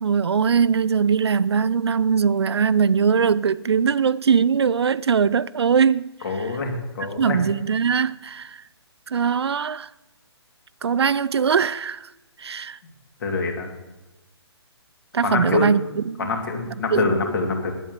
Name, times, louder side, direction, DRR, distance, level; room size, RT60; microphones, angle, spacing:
voice 1, 0.0-6.5 7.2-8.6 9.1-9.9 10.8-12.1 12.4-12.8 15.1-16.3 16.9-17.1, right 6 dB, 70° right, 0.4 m, -21 dB
voice 2, 6.2-7.4 13.2-13.7 15.2-15.7 16.2-17.7, left 3 dB, 50° left, 2.7 m, -25 dB
9.8 x 8.0 x 8.1 m
figure-of-eight pair, 135°, 14 cm